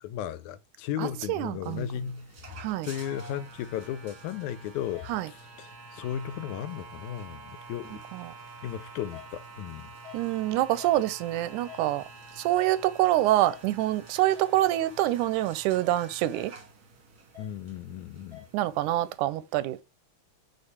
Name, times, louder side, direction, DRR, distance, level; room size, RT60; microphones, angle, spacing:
voice 1, 0.0-2.3 2.8-8.0 8.6-9.9 17.4-18.4, left 10 dB, 80° left, 1.9 m, -35 dB
voice 2, 1.0-1.9 2.6-2.9 5.1-5.3 7.9-8.3 10.1-12.0 12.4-16.5 18.5-19.8, right 15 dB, 90° right, 2.1 m, -26 dB
sound 1, 1.6-19.2, right 2 dB, 45° right, 1.3 m, -48 dB
5.1 x 4.3 x 4.6 m
omnidirectional pair, 3.5 m